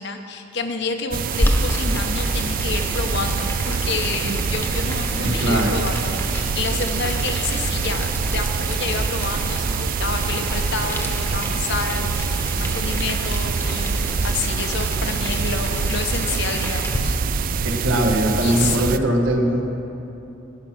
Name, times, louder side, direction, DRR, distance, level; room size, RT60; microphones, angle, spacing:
voice 1, 0.0-17.6 18.4-19.0, left 4 dB, 60° left, 5 dB, 1.0 m, -29 dB
sound 1, 1.1-19.0, right 6 dB, 45° right, 0.3 m, -25 dB
Boiling, 1.3-17.0, equal, 10° left, 1.1 m, -28 dB
voice 2, 5.2-5.8 17.6-19.6, right 1 dB, 75° right, 2 dB, 1.5 m, -21 dB
17.5 x 6.0 x 6.0 m, 3.0 s
head